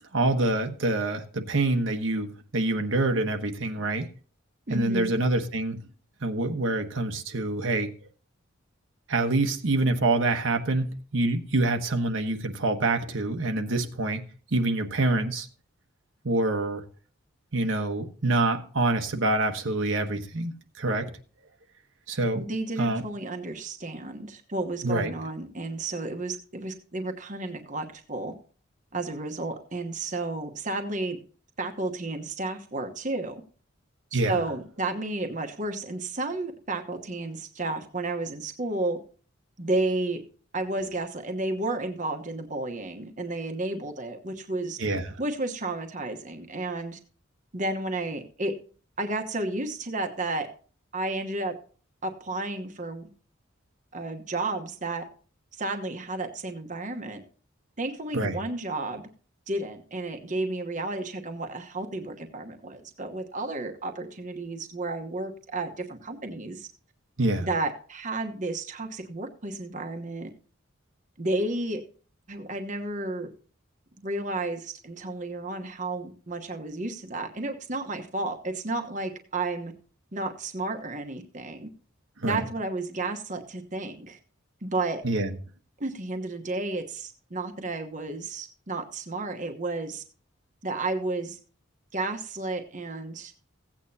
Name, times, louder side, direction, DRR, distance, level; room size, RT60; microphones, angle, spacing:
voice 1, 0.1-4.1 4.7-5.8 6.2-7.9 9.1-14.2 14.5-15.5 16.2-16.8 17.5-21.1 22.1-22.4 22.8-23.0 24.8-25.1 34.1-34.4 44.8-45.0 58.1-58.4 67.2-67.5 82.2-82.4 85.0-85.3, right 2 dB, 70° right, 1.2 m, -26 dB
voice 2, 4.7-5.1 22.3-28.3 28.9-31.2 31.6-33.4 34.1-39.0 39.6-40.2 40.5-44.8 45.2-47.0 47.5-48.5 49.0-50.5 50.9-51.5 52.0-53.1 53.9-55.0 55.5-57.2 57.8-59.0 59.5-66.7 67.4-70.3 71.2-71.8 72.3-73.3 74.0-79.7 80.1-81.7 82.2-84.2 84.6-85.0 85.8-90.0 90.6-91.4 91.9-93.3, right 2 dB, 40° right, 1.1 m, -32 dB
16.0 x 8.7 x 2.8 m
head